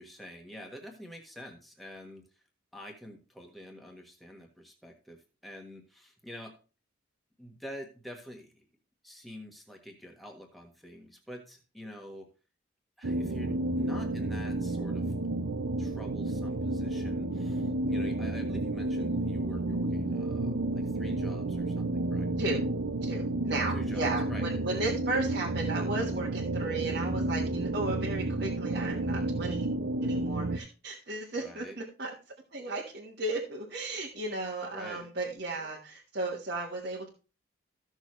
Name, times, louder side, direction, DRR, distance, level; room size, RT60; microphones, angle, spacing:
voice 1, 0.0-2.4 2.7-6.5 7.4-8.6 9.0-12.3 13.0-15.1 15.8-22.3 23.7-24.5 31.4-31.8 34.6-35.1, equal, ahead, 1 dB, 1.4 m, -47 dB
sound 1, 13.0-30.6, right 2 dB, 75° right, 0.6 m, -31 dB
voice 2, 23.0-29.7 30.0-32.1 32.5-37.1, right 2 dB, 50° right, -4 dB, 1.4 m, -35 dB
14.5 x 6.4 x 3.2 m, 0.34 s
head